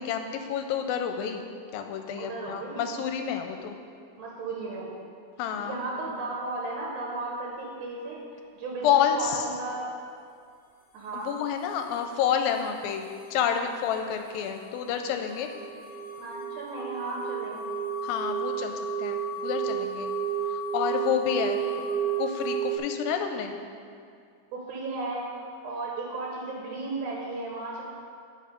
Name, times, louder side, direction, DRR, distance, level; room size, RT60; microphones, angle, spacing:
voice 1, 0.0-1.4 1.7-3.8 5.4-5.8 8.8-9.5 11.1-13.1 13.3-15.5 18.0-20.1 20.5-21.6 22.2-23.6, left 8 dB, 85° left, 6 dB, 2.3 m, -29 dB
voice 2, 2.2-2.9 4.2-4.9 5.6-8.2 8.5-9.9 10.9-11.4 16.1-17.7 24.5-27.8, right 3 dB, 70° right, -3 dB, 2.1 m, -35 dB
sound 1, 14.4-22.8, right 7 dB, 55° left, 2.1 m, -32 dB
8.7 x 5.2 x 5.1 m, 2.2 s
omnidirectional pair, 4.1 m